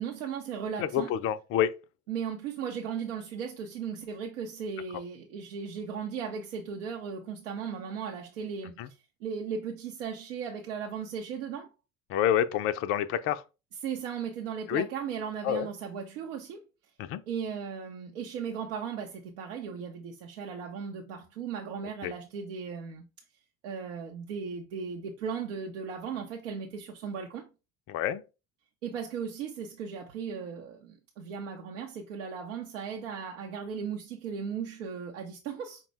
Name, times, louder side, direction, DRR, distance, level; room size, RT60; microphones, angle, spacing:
voice 1, 0.0-1.1 2.1-11.7 13.8-16.6 17.3-23.1 23.6-27.5 28.8-35.8, right 6 dB, 65° right, 0.7 m, -37 dB
voice 2, 0.8-1.7 8.8-8.9 12.1-13.4 14.7-14.9 15.4-15.7 17.0-17.2 22.0-22.1 27.9-28.2, left 10 dB, 35° left, 0.4 m, -28 dB
5.3 x 2.2 x 3.2 m
figure-of-eight pair, 60°, 40 cm